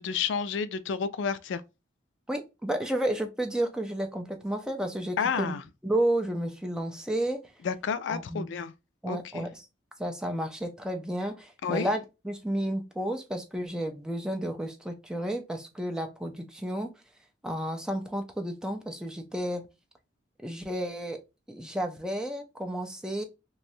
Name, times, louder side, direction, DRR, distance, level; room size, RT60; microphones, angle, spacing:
voice 1, 0.0-1.6 5.2-5.6 7.6-8.7 9.1-9.4 11.6-11.9, left 6 dB, 70° left, 0.3 m, -30 dB
voice 2, 2.3-5.5 5.8-7.4 8.1-8.5 9.0-9.7 10.0-16.9 17.4-19.7 20.4-21.2 21.5-23.2, right 1 dB, 5° right, 0.5 m, -31 dB
3.1 x 2.6 x 2.7 m
head